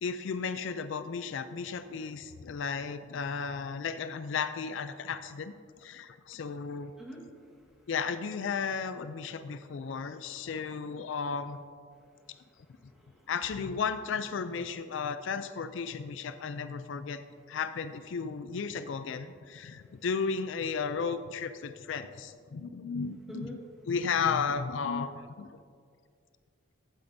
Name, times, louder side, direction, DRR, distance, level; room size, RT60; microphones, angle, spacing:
voice 1, 0.0-6.9 7.9-11.6 13.3-17.2 17.5-23.6 23.9-25.6, left 5 dB, 70° left, 11 dB, 0.4 m, -34 dB
voice 2, 7.0-7.9 12.4-13.3 19.8-20.0 23.3-23.6, equal, ahead, -3 dB, 1.4 m, -48 dB
14.5 x 8.6 x 2.7 m, 2.2 s
head